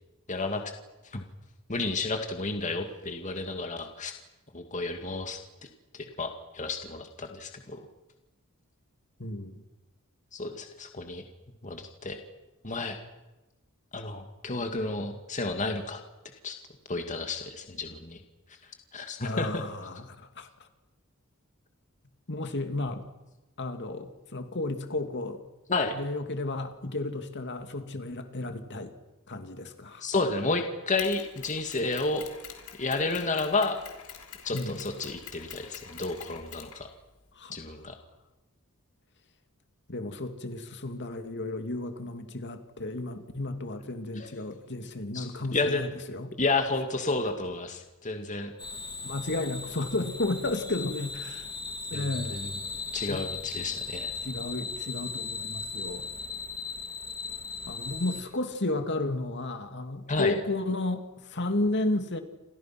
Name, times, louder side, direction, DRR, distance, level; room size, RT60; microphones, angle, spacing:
voice 1, 0.3-0.6 1.0-1.2 1.7-4.1 4.5-5.4 5.9-7.8 10.3-11.2 11.6-12.2 12.6-13.0 13.9-16.0 16.4-16.6 16.9-18.2 18.9-19.6 25.7-26.0 30.0-32.2 32.8-33.8 34.4-36.9 37.5-37.9 44.2-44.3 45.1-45.8 46.4-48.5 51.9-52.5 52.9-54.1 60.1-60.3, left 3 dB, 35° left, 5 dB, 2.2 m, -31 dB
voice 2, 9.2-9.6 19.2-20.7 22.3-23.0 23.6-25.4 25.9-28.9 29.3-30.1 34.5-34.9 37.3-37.6 39.9-46.3 49.0-51.5 51.9-52.4 53.1-53.2 54.2-56.1 57.7-62.2, left 2 dB, 55° left, 7 dB, 2.5 m, -33 dB
Mechanisms, 31.0-37.3, left 8 dB, 85° left, 4.6 m, -46 dB
sound 1, 48.6-58.2, left 4 dB, 20° left, 2.6 m, -37 dB
29.5 x 25.5 x 6.1 m, 1.0 s
head